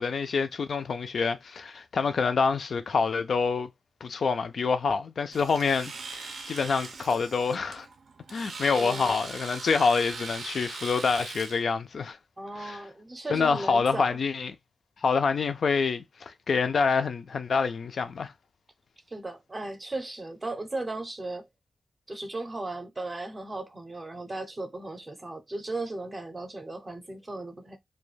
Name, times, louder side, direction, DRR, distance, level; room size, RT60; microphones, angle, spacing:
voice 1, 0.0-3.7 4.0-7.9 8.3-12.2 12.6-12.8 13.3-14.6 15.0-18.3, left 5 dB, 60° left, 0.3 m, -27 dB
Domestic sounds home sounds, 5.3-11.6, right 4 dB, 75° right, 0.5 m, -40 dB
voice 2, 8.6-9.2 12.4-14.2 19.1-21.5 22.1-27.8, right 2 dB, 25° right, 0.5 m, -36 dB
2.3 x 2.2 x 3.1 m
wide cardioid pair, 170°, 0 cm